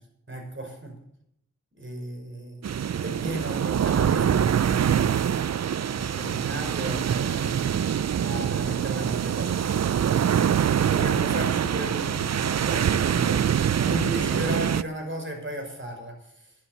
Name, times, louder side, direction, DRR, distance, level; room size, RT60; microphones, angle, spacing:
voice 1, 0.3-1.0 1.8-5.2 5.9-7.7 8.1-13.5 13.8-16.6, right 1 dB, 40° right, 3 dB, 5.4 m, -35 dB
sound 1, 2.6-14.8, right 8 dB, 60° right, 0.5 m, -24 dB
11.5 x 10.0 x 8.0 m, 0.73 s
cardioid pair, 50°, 30 cm